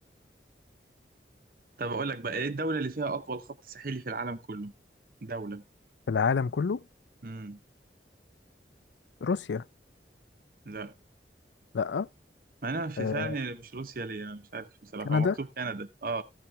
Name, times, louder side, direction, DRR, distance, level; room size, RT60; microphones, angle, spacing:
voice 1, 1.8-4.7 5.2-5.6 7.2-7.6 10.7-10.9 12.6-16.2, right 3 dB, 55° right, 0.7 m, -34 dB
voice 2, 6.1-6.8 9.2-9.6 11.7-12.1 13.0-13.3 15.0-15.4, left 5 dB, 85° left, 0.4 m, -27 dB
15.0 x 5.9 x 3.3 m
head